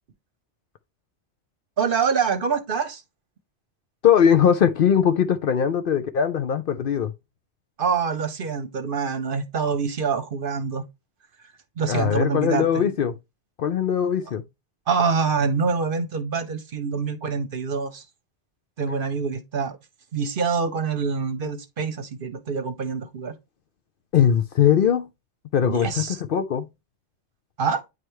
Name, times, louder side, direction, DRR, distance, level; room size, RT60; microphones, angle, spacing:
voice 1, 1.8-3.0 7.8-10.8 11.8-12.8 14.9-18.0 18.8-19.8 20.1-23.3 25.6-26.2 27.6-27.8, right 5 dB, 55° right, 0.9 m, -25 dB
voice 2, 4.0-7.1 11.9-13.2 13.6-14.4 24.1-25.1 25.5-26.7, left 8 dB, 60° left, 0.7 m, -20 dB
9.3 x 3.3 x 3.1 m
omnidirectional pair, 1.2 m